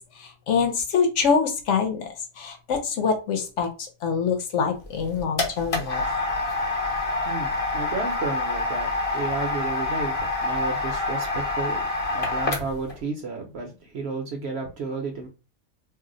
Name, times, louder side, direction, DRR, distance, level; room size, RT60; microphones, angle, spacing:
voice 1, 0.5-2.1 2.4-3.7 4.0-6.0, left 5 dB, 65° left, 4 dB, 0.9 m, -24 dB
sound 1, 4.8-12.9, left 2 dB, 35° left, 0.7 m, -27 dB
voice 2, 7.2-11.8 12.1-15.3, right 4 dB, 60° right, 2 dB, 0.8 m, -32 dB
2.6 x 2.0 x 3.7 m, 0.32 s
omnidirectional pair, 1.5 m